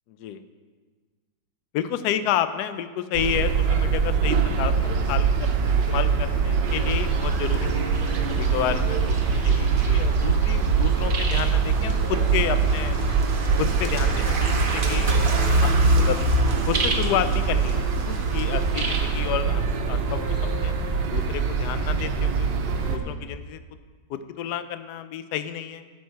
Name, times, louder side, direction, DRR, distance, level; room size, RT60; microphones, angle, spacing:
voice 1, 0.1-0.4 1.7-5.5 5.8-7.8 8.3-13.0 13.6-16.2 16.7-20.7 21.1-22.5 22.9-23.6 24.1-25.8, left 10 dB, 70° left, 11 dB, 1.0 m, -30 dB
sound 1, 3.1-23.0, right 5 dB, 70° right, 1.5 m, -23 dB
sound 2, 6.7-19.3, right 3 dB, 40° right, 0.8 m, -34 dB
11.5 x 7.4 x 4.6 m, 1.5 s
omnidirectional pair, 2.1 m